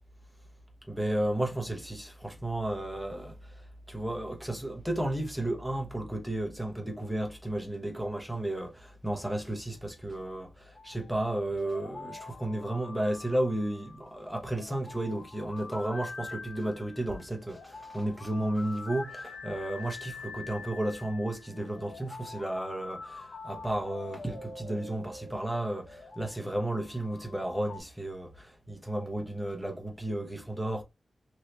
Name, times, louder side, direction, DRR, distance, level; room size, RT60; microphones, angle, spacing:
voice 1, 0.8-30.8, right 1 dB, ahead, 0.8 m, -33 dB
sound 1, 10.6-27.8, left 3 dB, 60° left, 1.0 m, -45 dB
3.2 x 2.7 x 2.8 m
wide cardioid pair, 125°, 0 cm